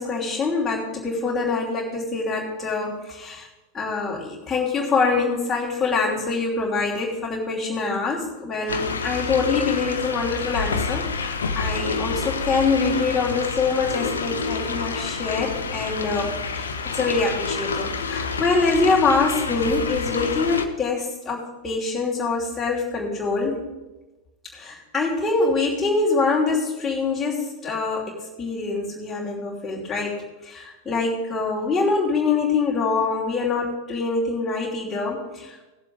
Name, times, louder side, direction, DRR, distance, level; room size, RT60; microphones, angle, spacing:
voice 1, 0.0-3.5 3.7-16.7 16.9-23.6 24.5-35.6, left 4 dB, 15° left, -6 dB, 3.0 m, -24 dB
sound 1, 8.7-20.7, left 4 dB, 70° left, 0.8 m, -28 dB
18.0 x 7.4 x 3.9 m, 1.1 s
figure-of-eight pair, 90°, 0 cm